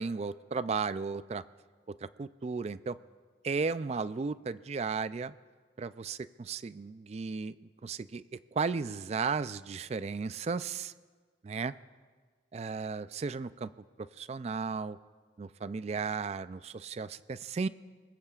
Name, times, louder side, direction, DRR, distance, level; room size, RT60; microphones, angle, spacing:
voice 1, 0.0-1.4 2.0-3.0 3.4-5.3 5.8-7.5 7.8-8.2 8.5-10.9 11.4-11.7 12.5-13.7 14.2-15.0 15.4-17.7, right 5 dB, 35° right, 15 dB, 0.3 m, -34 dB
25.5 x 21.0 x 2.4 m, 1.5 s
head